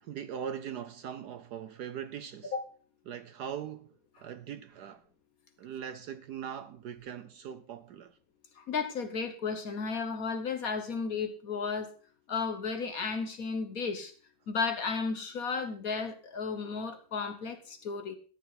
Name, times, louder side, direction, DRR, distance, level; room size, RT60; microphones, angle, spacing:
voice 1, 0.0-2.5 3.1-5.0 5.6-8.2, right 8 dB, 65° right, 1.1 m, -41 dB
voice 2, 8.6-11.9 12.3-14.1 14.5-18.2, left 5 dB, 50° left, 1.4 m, -33 dB
13.5 x 9.9 x 4.0 m
omnidirectional pair, 2.1 m